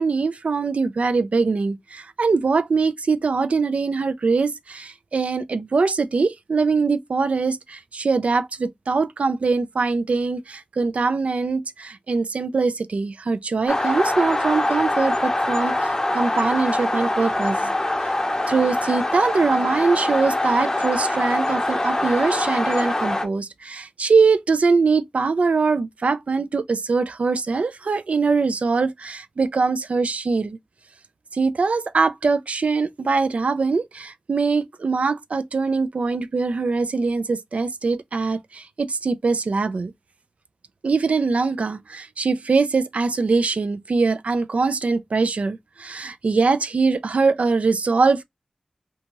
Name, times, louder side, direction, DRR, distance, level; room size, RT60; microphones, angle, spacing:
voice 1, 0.0-17.7 18.0-18.1 18.5-30.6 31.3-39.9 40.8-48.2, right 4 dB, 85° right, 0.3 m, -22 dB
sound 1, 13.7-23.3, left 1 dB, 25° left, 0.6 m, -24 dB
2.7 x 2.3 x 2.9 m
wide cardioid pair, 55°, 2 cm